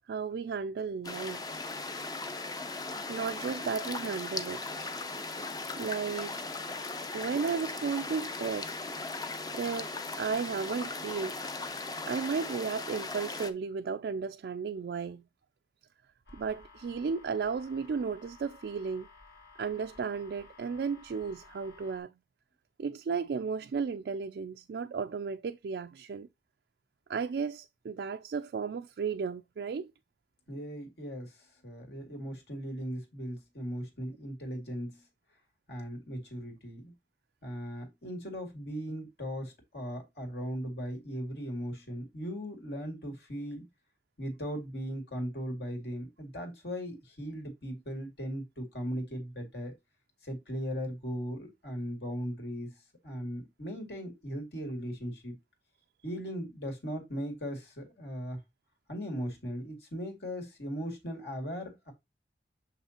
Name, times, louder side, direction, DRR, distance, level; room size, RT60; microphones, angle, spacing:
voice 1, 0.1-1.4 3.1-4.6 5.8-6.3 7.1-8.8 9.5-11.3 12.1-15.2 16.3-19.1 19.6-22.1 22.8-26.3 27.1-29.9, right 5 dB, 70° right, 0.3 m, -34 dB
sound 1, 1.0-13.5, left 3 dB, 20° left, 0.5 m, -38 dB
sound 2, 16.3-22.0, left 3 dB, 90° left, 2.7 m, -55 dB
voice 2, 30.5-35.0 35.7-36.9 37.4-43.7 44.2-49.7 50.2-52.7 53.0-55.4 56.0-58.4 58.9-61.9, equal, 70° left, 2.4 m, -38 dB
6.6 x 5.5 x 2.9 m
head